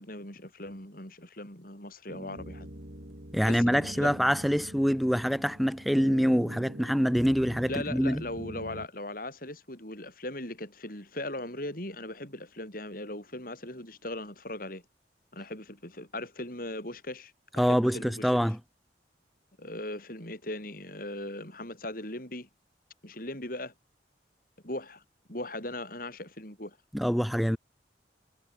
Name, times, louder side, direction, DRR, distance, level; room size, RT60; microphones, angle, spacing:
voice 1, 0.0-2.7 3.4-4.2 7.7-14.8 15.3-18.3 19.6-22.5 23.0-23.7 24.6-25.0 25.3-26.8, left 1 dB, 50° left, 7.8 m, -39 dB
sound 1, 2.1-8.9, equal, 55° right, 5.8 m, -43 dB
voice 2, 3.3-8.2 17.6-18.6 26.9-27.6, equal, ahead, 1.3 m, -25 dB
head